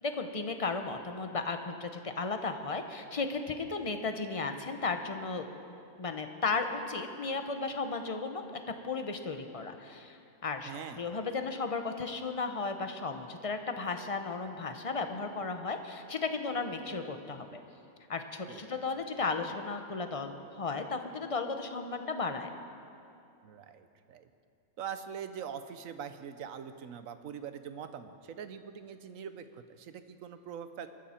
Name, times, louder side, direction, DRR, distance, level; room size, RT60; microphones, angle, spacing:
voice 1, 0.0-5.5 6.0-8.4 8.8-17.5 18.1-22.5, left 4 dB, 30° left, 6 dB, 0.8 m, -35 dB
voice 2, 10.7-11.0 18.5-18.6 23.4-24.3 24.8-30.9, right 8 dB, 80° right, 10 dB, 1.2 m, -43 dB
22.0 x 13.5 x 4.4 m, 2.5 s
omnidirectional pair, 1.4 m